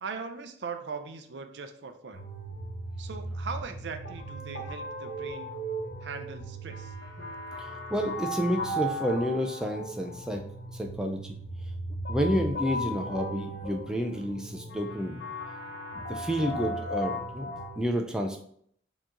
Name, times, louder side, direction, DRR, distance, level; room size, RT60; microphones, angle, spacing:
voice 1, 0.0-2.2 3.0-5.5 6.0-6.9, right 5 dB, 65° right, 7 dB, 0.5 m, -40 dB
sound 1, 2.1-17.8, equal, 80° left, 1.1 m, -36 dB
voice 2, 7.6-10.4 10.8-11.2 12.1-15.2 15.9-18.4, equal, 5° right, 2 dB, 0.4 m, -30 dB
4.7 x 3.0 x 3.7 m, 0.64 s
head